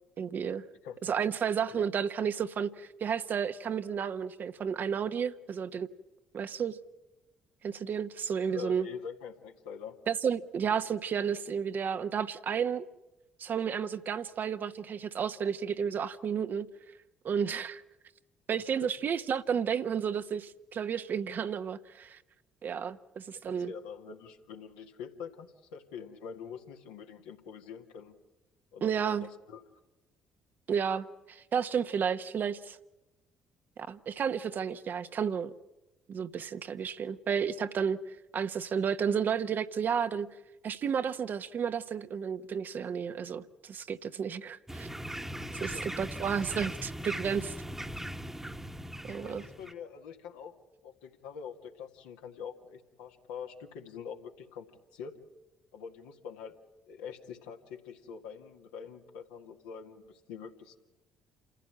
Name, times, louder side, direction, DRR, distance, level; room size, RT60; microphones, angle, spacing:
voice 1, 0.2-0.6 1.0-5.9 6.3-6.8 7.6-8.9 10.1-12.8 13.4-16.7 17.2-17.8 18.5-22.2 22.6-23.7 28.8-29.3 30.7-32.8 33.8-35.5 36.1-40.3 40.6-44.9 45.6-47.5 49.1-49.4, right 7 dB, 50° right, 1.0 m, -32 dB
voice 2, 8.5-10.0 18.8-18.9 23.5-28.2 28.7-29.6 45.4-45.8 49.2-50.5 50.8-54.7 54.9-55.1 55.7-56.5 56.9-60.8, left 7 dB, 80° left, 1.9 m, -45 dB
sound 1, 44.7-49.7, equal, 10° right, 1.3 m, -39 dB
28.5 x 15.0 x 8.8 m
hypercardioid pair, 50°, 4 cm